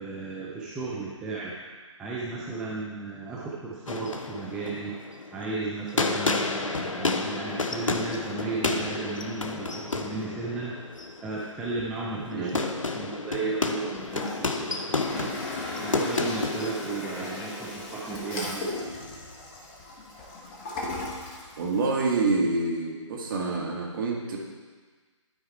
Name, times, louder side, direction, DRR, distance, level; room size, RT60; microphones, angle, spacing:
voice 1, 0.0-1.6 2.0-5.0 5.3-10.8 11.2-12.6 12.9-15.4 15.7-18.7, right 3 dB, 5° right, -6 dB, 0.4 m, -34 dB
sound 1, 3.9-18.4, left 3 dB, 80° left, 0.8 m, -31 dB
Toilet flush, 14.0-22.1, left 2 dB, 20° left, 1.1 m, -38 dB
voice 2, 21.6-24.4, right 3 dB, 40° right, 0 dB, 1.7 m, -27 dB
12.0 x 4.6 x 4.3 m, 1.5 s
figure-of-eight pair, 145°, 16 cm